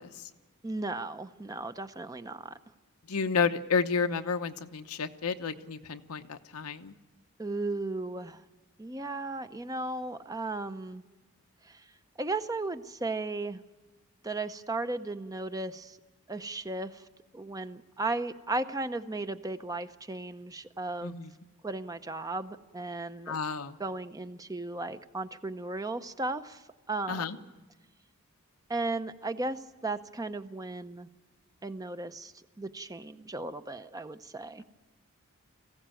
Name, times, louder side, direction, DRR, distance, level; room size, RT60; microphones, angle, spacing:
voice 1, 0.6-2.6 7.4-8.4 8.8-11.0 11.6-11.8 12.2-13.6 14.2-16.0 16.3-17.0 17.3-21.2 21.6-23.4 23.8-26.6 26.9-27.5 28.7-31.1 31.6-34.6, right 2 dB, 15° right, 10 dB, 0.6 m, -35 dB
voice 2, 3.1-6.9 21.0-21.3 23.3-23.7 27.1-27.4, left 5 dB, 90° left, 8 dB, 0.9 m, -31 dB
20.0 x 15.5 x 9.1 m, 1.2 s
head